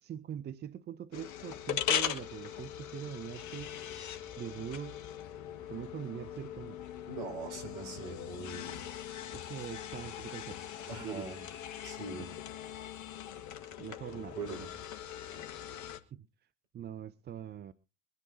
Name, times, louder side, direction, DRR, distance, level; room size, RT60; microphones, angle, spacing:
voice 1, 0.0-3.7 4.4-5.0 5.7-6.8 9.3-10.6 11.0-11.3 13.8-14.4 16.1-16.3 16.7-17.7, right 10 dB, 30° right, 0.6 m, -42 dB
sound 1, 1.1-16.0, left 10 dB, 50° left, 1.7 m, -40 dB
voice 2, 7.1-8.9 10.8-11.4 11.8-12.4 14.1-14.7, right 3 dB, 60° right, 5.7 m, -42 dB
23.0 x 10.5 x 2.8 m
hypercardioid pair, 70°, 37 cm